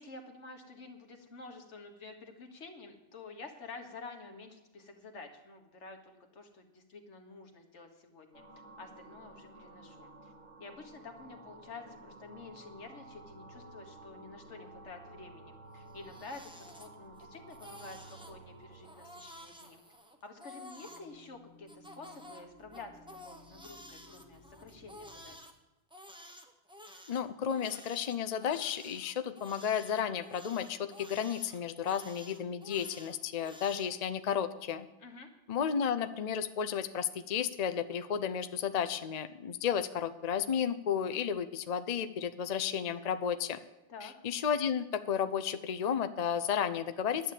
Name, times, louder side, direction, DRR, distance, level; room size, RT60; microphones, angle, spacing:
voice 1, 0.0-8.4 8.8-10.3 10.6-16.5 16.8-19.8 20.2-25.4 35.0-35.3 43.9-44.1, left 3 dB, 75° left, 5 dB, 1.7 m, -49 dB
sound 1, 8.3-20.3 20.7-25.3, right 1 dB, 75° right, 3.1 m, -54 dB
Crying sobbing, 15.8-17.2 17.5-18.4 18.8-21.1 21.7-25.5 25.9-33.9, equal, 5° right, 0.9 m, -52 dB
voice 2, 27.1-34.9 35.5-43.6 44.0-47.3, left 8 dB, 45° left, 10 dB, 0.5 m, -33 dB
11.0 x 8.2 x 7.5 m, 1.0 s
omnidirectional pair, 1.2 m